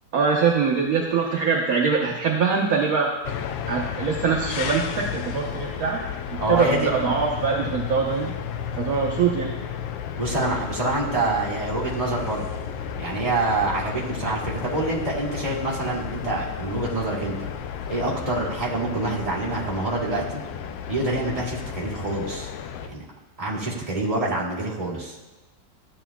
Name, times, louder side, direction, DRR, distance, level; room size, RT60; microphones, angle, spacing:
voice 1, 0.1-3.1 3.7-6.0 6.5-8.3 8.8-9.5, right 5 dB, 55° right, -2 dB, 1.3 m, -23 dB
sound 1, 3.2-22.9, left 8 dB, 90° left, 1.3 m, -33 dB
voice 2, 6.4-6.9 10.2-12.5 13.0-17.3 17.9-20.4 20.9-22.5 22.9-23.0 23.4-25.2, right 2 dB, 20° right, -6 dB, 1.9 m, -26 dB
14.5 x 9.0 x 2.3 m, 1.1 s
omnidirectional pair, 2.0 m